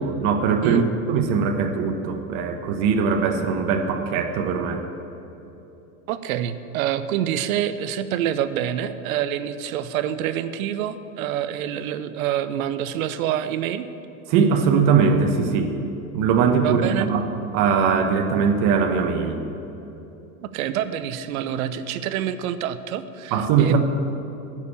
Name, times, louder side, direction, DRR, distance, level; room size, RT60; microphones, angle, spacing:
voice 1, 0.0-4.8 14.3-15.7 16.1-17.3 17.5-19.4 23.3-23.8, right 6 dB, 45° right, 5 dB, 1.1 m, -21 dB
voice 2, 6.1-13.9 16.6-17.1 20.4-23.8, right 10 dB, 70° right, 13 dB, 0.7 m, -27 dB
8.4 x 6.6 x 8.4 m, 3.0 s
supercardioid pair, 120°, 44 cm